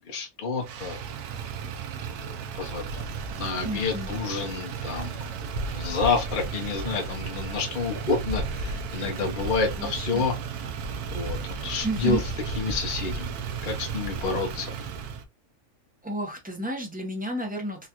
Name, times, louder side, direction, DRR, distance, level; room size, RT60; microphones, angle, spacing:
voice 1, 0.1-1.0 2.2-5.4 5.6-10.4 11.1-12.2 12.6-13.3 13.6-14.7, left 4 dB, 45° left, 0.7 m, -29 dB
Motor vehicle (road), 0.6-15.2, right 5 dB, 90° right, 1.1 m, -34 dB
voice 2, 3.6-4.1 9.8-10.2 11.8-12.2 14.7-14.9 16.0-17.9, right 1 dB, 10° right, 0.4 m, -32 dB
3.9 x 2.4 x 2.8 m
omnidirectional pair, 1.6 m